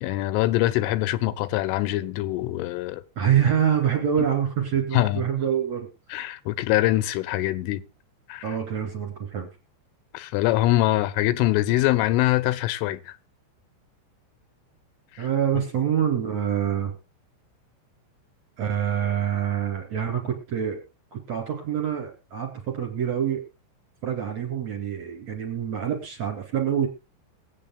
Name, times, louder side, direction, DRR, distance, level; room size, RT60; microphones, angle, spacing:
voice 1, 0.0-3.0 4.9-5.2 6.1-7.8 8.3-8.4 10.1-13.2 15.1-15.3, left 16 dB, 85° left, 3.2 m, -23 dB
voice 2, 3.2-5.9 8.4-9.5 15.2-16.9 18.6-20.8 21.1-23.4 24.0-26.9, right 9 dB, 45° right, 2.7 m, -26 dB
22.0 x 8.6 x 2.3 m
omnidirectional pair, 5.7 m